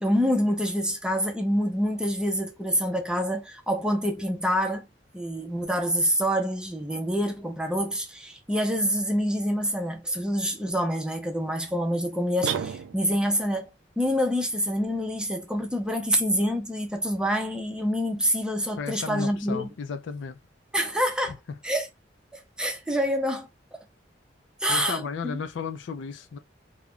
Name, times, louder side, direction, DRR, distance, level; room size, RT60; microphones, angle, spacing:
voice 1, 0.0-4.9 5.1-13.7 14.0-19.7 20.7-21.3 21.6-21.9 22.3-23.8 24.6-25.4, equal, 5° right, 0.5 m, -26 dB
sound 1, 12.4-13.3, right 8 dB, 90° right, 0.3 m, -31 dB
voice 2, 18.8-20.4 21.5-21.6 24.7-26.4, left 5 dB, 70° left, 0.4 m, -34 dB
2.3 x 2.1 x 3.6 m
head